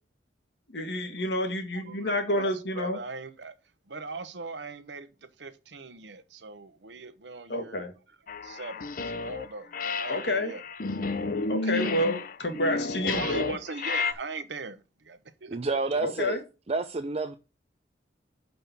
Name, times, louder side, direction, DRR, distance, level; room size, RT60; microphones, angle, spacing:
voice 1, 0.7-3.0 7.5-7.9 10.1-10.5 11.5-13.5 16.0-16.4, left 1 dB, 65° left, 1.8 m, -29 dB
voice 2, 1.7-3.6 3.9-7.9 8.4-10.6 11.6-12.1 13.0-16.0, right 3 dB, 75° right, 0.9 m, -40 dB
sound 1, 8.3-9.5 9.7-14.1, left 3 dB, 50° left, 0.6 m, -31 dB
voice 3, 15.5-16.4 16.7-17.4, right 3 dB, 35° right, 0.5 m, -29 dB
6.1 x 5.4 x 6.8 m
head